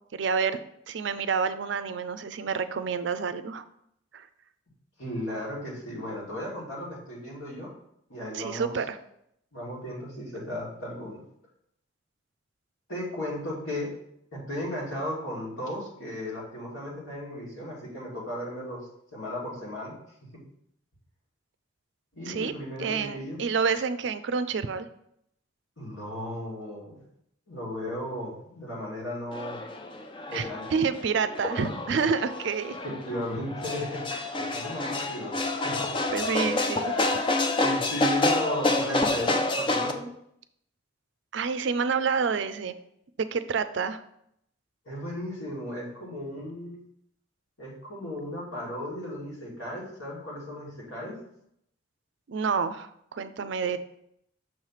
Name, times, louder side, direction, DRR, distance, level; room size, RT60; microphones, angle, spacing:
voice 1, 0.1-0.6 0.9-3.6 4.1-4.3 8.3-9.0 22.3-22.5 22.8-24.9 30.3-32.8 36.1-37.1 41.3-42.7 43.3-44.0 52.3-53.8, right 5 dB, 65° right, 12 dB, 0.4 m, -28 dB
voice 2, 5.0-7.7 8.1-8.7 9.5-11.2 12.9-13.9 14.3-18.8 19.1-19.9 20.3-20.4 22.1-23.4 25.8-27.0 27.5-29.6 30.3-30.7 31.6-31.7 32.8-34.1 34.3-36.0 37.6-40.1 44.8-46.8 47.6-51.2, left 1 dB, 85° left, -5 dB, 2.6 m, -35 dB
sound 1, 29.3-39.9, left 2 dB, 25° left, 0.4 m, -28 dB
6.2 x 3.2 x 5.6 m, 0.74 s
head